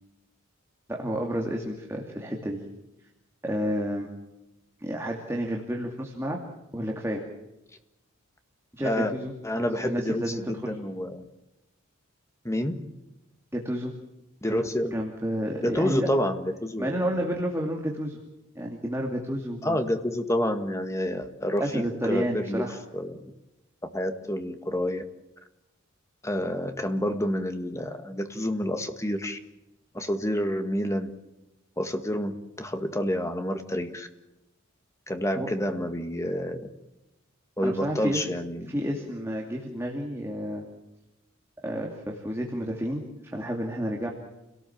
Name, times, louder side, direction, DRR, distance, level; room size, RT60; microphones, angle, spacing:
voice 1, 0.9-2.6 3.4-4.1 4.8-6.4 6.7-7.2 8.7-9.3 9.8-10.7 13.5-13.9 14.5-14.6 14.9-16.1 16.8-18.2 18.5-19.8 21.6-22.8 35.3-35.5 37.6-38.2 38.7-40.6 41.6-43.0 43.3-44.1, equal, 10° right, 0 dB, 2.6 m, -30 dB
voice 2, 8.8-9.1 9.4-11.2 12.4-12.8 14.4-15.0 15.6-17.2 19.6-23.2 23.9-25.0 26.2-29.4 29.9-31.1 31.8-34.1 35.1-36.7 37.6-38.7, equal, 15° left, 7 dB, 1.8 m, -29 dB
29.5 x 18.0 x 7.4 m, 0.95 s
head